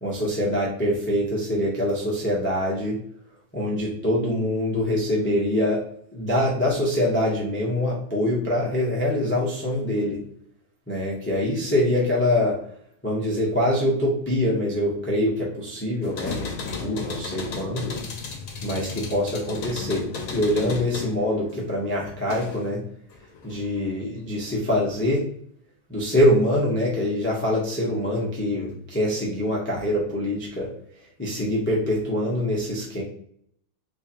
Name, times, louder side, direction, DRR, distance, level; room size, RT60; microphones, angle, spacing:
voice 1, 0.0-3.0 3.5-5.8 6.1-10.2 10.9-12.6 13.0-17.9 18.6-22.8 23.4-25.3 25.9-30.7 31.2-33.0, left 1 dB, 15° left, -4 dB, 0.3 m, -24 dB
sound 1, 16.0-22.7 23.1-23.9, left 4 dB, 60° left, 1.1 m, -34 dB
3.7 x 3.1 x 2.8 m, 0.63 s
omnidirectional pair, 2.0 m